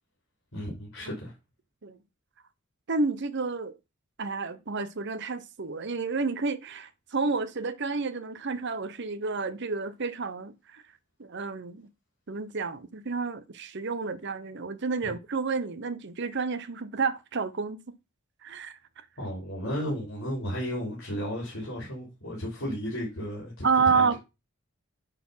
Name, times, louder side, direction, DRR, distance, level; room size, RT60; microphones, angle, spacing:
voice 1, 0.5-1.3 15.0-15.1 19.2-24.1, equal, 70° left, 4.0 m, -34 dB
voice 2, 2.9-3.7 4.2-10.8 11.2-11.9 12.3-17.8 18.4-18.8 23.6-24.1, right 4 dB, 55° right, 0.9 m, -30 dB
10.0 x 4.2 x 5.6 m
head